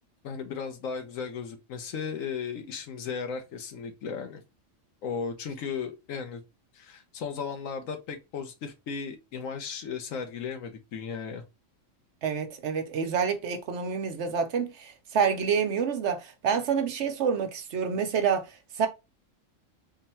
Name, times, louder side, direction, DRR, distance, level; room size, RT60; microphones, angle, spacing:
voice 1, 0.2-4.4 5.0-6.4 6.7-11.4, left 6 dB, 75° left, 1.1 m, -35 dB
voice 2, 12.2-18.9, right 6 dB, 65° right, 0.9 m, -28 dB
3.9 x 2.1 x 4.2 m
omnidirectional pair, 1.4 m